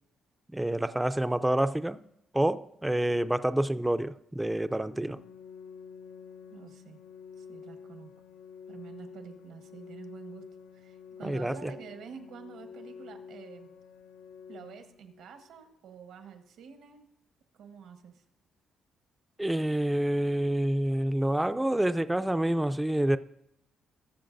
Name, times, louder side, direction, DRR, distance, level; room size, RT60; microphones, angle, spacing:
voice 1, 0.5-2.0 2.3-5.2 11.2-11.7 19.4-23.2, right 1 dB, 10° right, 0.4 m, -28 dB
Organ, 4.6-15.6, left 6 dB, 75° left, 0.6 m, -49 dB
voice 2, 6.5-7.0 7.4-8.1 8.7-10.5 10.7-13.7 14.5-17.0 17.6-18.2, right 7 dB, 80° right, 1.2 m, -48 dB
20.5 x 7.1 x 2.6 m
cardioid pair, 90°, 0 cm